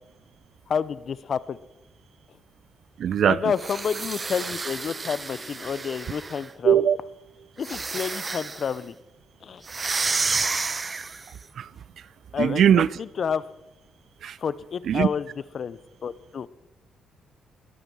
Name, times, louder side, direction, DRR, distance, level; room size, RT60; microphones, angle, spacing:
voice 1, 0.7-1.6 3.3-6.9 7.6-8.9 9.4-9.6 12.3-13.4 14.4-15.3 15.5-16.5, left 7 dB, 55° left, 0.7 m, -29 dB
voice 2, 3.0-3.4 6.6-7.0 11.6-11.7 12.4-12.9 14.2-14.3 14.9-15.1, right 9 dB, 65° right, 0.5 m, -19 dB
sound 1, 3.5-6.5 7.6-8.8 9.7-11.4, right 4 dB, 35° right, 0.9 m, -30 dB
21.0 x 8.9 x 6.2 m
supercardioid pair, 60°, 0 cm